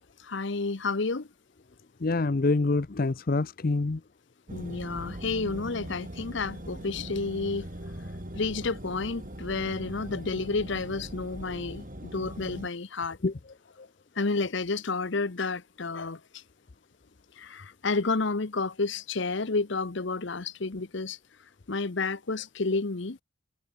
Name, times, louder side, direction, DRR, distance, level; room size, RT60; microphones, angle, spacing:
voice 1, 0.2-1.3 4.5-7.7 8.3-13.2 14.2-16.2 17.4-21.2 21.7-23.2, left 3 dB, 60° left, 0.9 m, -30 dB
voice 2, 2.0-4.0 13.2-13.3, left 3 dB, 45° left, 0.6 m, -26 dB
sound 1, 4.5-12.7, equal, 40° right, 4.9 m, -41 dB
head